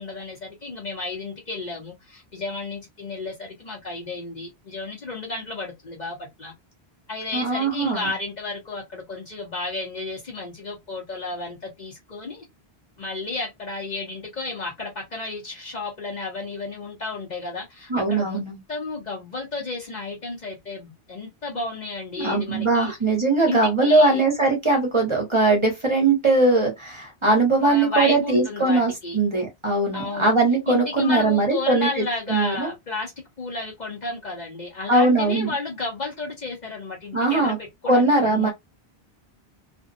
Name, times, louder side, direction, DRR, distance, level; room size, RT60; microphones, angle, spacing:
voice 1, 0.0-6.5 7.1-12.5 13.0-18.4 18.7-22.9 23.4-24.2 27.6-29.2 29.9-30.3 30.7-33.1 33.4-38.5, left 3 dB, 45° left, 0.9 m, -32 dB
voice 2, 7.3-8.1 17.9-18.6 22.2-32.7 34.9-35.5 37.1-37.6 37.8-38.5, right 2 dB, 30° right, 1.0 m, -20 dB
2.5 x 2.2 x 2.5 m
omnidirectional pair, 1.1 m